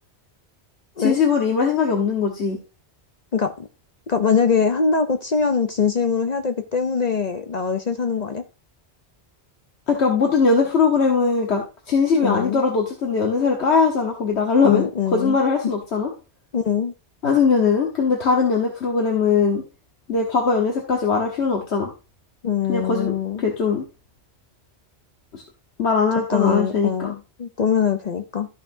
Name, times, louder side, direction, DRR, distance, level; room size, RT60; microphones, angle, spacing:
voice 1, 1.0-2.6 9.9-14.8 15.1-16.1 17.2-19.6 20.1-21.9 22.7-23.9 25.3-25.4 25.8-27.1, left 5 dB, 75° left, 1.6 m, -20 dB
voice 2, 3.3-3.7 4.1-8.4 12.2-12.6 14.6-15.4 16.5-16.9 22.4-23.4 26.3-28.5, left 6 dB, 45° left, 0.7 m, -22 dB
13.5 x 5.6 x 2.6 m
omnidirectional pair, 1.1 m